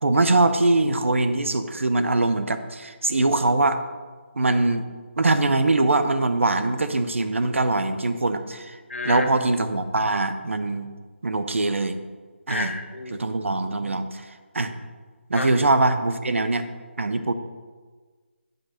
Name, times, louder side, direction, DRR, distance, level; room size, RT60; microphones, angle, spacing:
voice 1, 0.0-3.8 4.4-4.9 5.2-8.8 9.0-10.9 11.2-12.0 12.5-12.7 13.1-14.2 14.5-14.7 15.3-16.6 17.0-17.3, right 2 dB, 75° right, 9 dB, 0.8 m, -22 dB
voice 2, 8.9-9.3 12.5-13.3 15.3-15.5, left 3 dB, 80° left, 4 dB, 1.3 m, -30 dB
8.9 x 5.4 x 5.7 m, 1.4 s
figure-of-eight pair, 175°, 7 cm